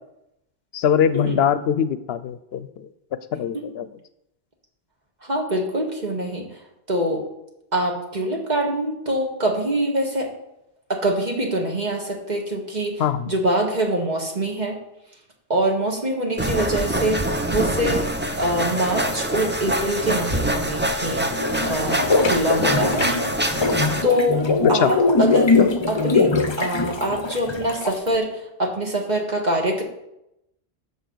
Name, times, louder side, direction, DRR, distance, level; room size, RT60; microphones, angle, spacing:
voice 1, 0.7-2.9 3.3-3.9 13.0-13.3 24.8-24.9, left 8 dB, 80° left, 14 dB, 0.8 m, -22 dB
voice 2, 5.2-6.5 6.9-7.2 7.7-10.3 10.9-14.8 15.5-18.0 18.4-23.0 24.0-24.4 24.7-25.5 25.9-26.3 26.6-29.8, right 1 dB, 45° right, 0 dB, 1.8 m, -24 dB
sound 1, 16.4-24.0, right 1 dB, 15° right, 0.6 m, -25 dB
sound 2, 21.3-28.1, left 3 dB, 30° left, 0.6 m, -21 dB
11.0 x 6.9 x 4.0 m, 0.84 s
omnidirectional pair, 1.0 m